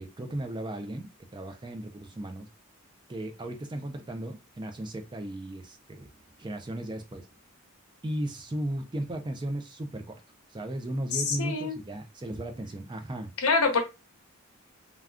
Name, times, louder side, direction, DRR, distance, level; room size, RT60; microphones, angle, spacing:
voice 1, 0.0-2.5 3.1-6.1 6.4-7.3 8.0-10.2 10.5-13.3, right 1 dB, 20° right, 0.4 m, -36 dB
voice 2, 11.1-11.8 13.4-13.8, left 4 dB, 75° left, 0.8 m, -25 dB
3.5 x 2.3 x 2.3 m
head